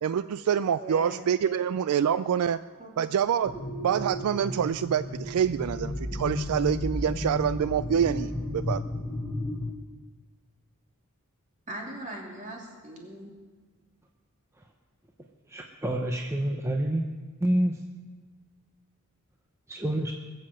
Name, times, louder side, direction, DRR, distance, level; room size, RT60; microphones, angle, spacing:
voice 1, 0.0-2.6 3.0-3.5 3.8-8.8, right 8 dB, 70° right, 15 dB, 0.3 m, -26 dB
voice 2, 0.8-1.1 1.4-1.6 2.8-2.9 11.7-13.3, right 2 dB, 35° right, -1 dB, 2.9 m, -39 dB
sound 1, 3.4-9.7, left 1 dB, 5° left, 1.1 m, -33 dB
voice 3, 15.5-17.0 17.4-17.8 19.7-20.1, right 1 dB, 10° right, 2 dB, 0.8 m, -27 dB
20.0 x 7.7 x 7.6 m, 1.4 s
head